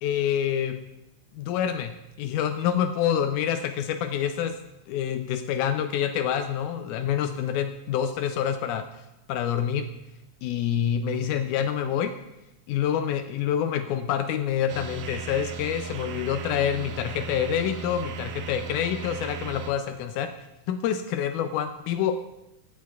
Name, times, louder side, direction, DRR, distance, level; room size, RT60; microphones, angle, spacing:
voice 1, 0.0-0.8 1.4-4.6 4.9-8.9 9.3-9.9 10.4-12.1 12.7-20.3 20.7-22.2, left 9 dB, 85° left, 8 dB, 2.0 m, -27 dB
sound 1, 14.7-19.7, right 6 dB, 80° right, 2.0 m, -37 dB
16.0 x 11.0 x 2.3 m, 0.91 s
omnidirectional pair, 3.5 m